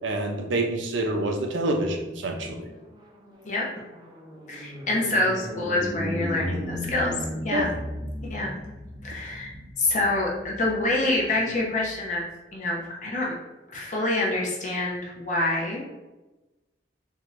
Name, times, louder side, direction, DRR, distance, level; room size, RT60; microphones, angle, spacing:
voice 1, 0.0-2.7 7.5-7.8, right 1 dB, 90° right, 3 dB, 0.6 m, -27 dB
sound 1, 2.6-12.2, equal, 25° right, 0.5 m, -36 dB
voice 2, 4.5-7.1 7.4-7.7 8.3-8.6 9.0-9.5 9.8-12.2 12.5-13.4 13.7-15.8, left 2 dB, 40° left, -3 dB, 0.8 m, -26 dB
3.7 x 2.8 x 3.1 m, 1.1 s
head